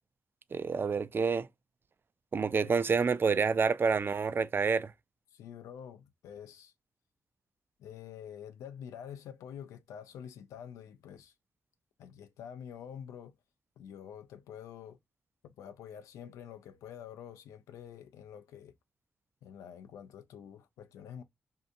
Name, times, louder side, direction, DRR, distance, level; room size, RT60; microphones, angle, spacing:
voice 1, 0.5-1.5 2.3-4.9, right 5 dB, 45° right, 0.3 m, -28 dB
voice 2, 2.6-3.0 5.3-6.7 7.8-11.3 12.0-13.3 13.8-15.0 15.4-18.7 19.4-21.2, left 8 dB, 85° left, 0.4 m, -47 dB
2.7 x 2.4 x 2.3 m
supercardioid pair, 50°, 5 cm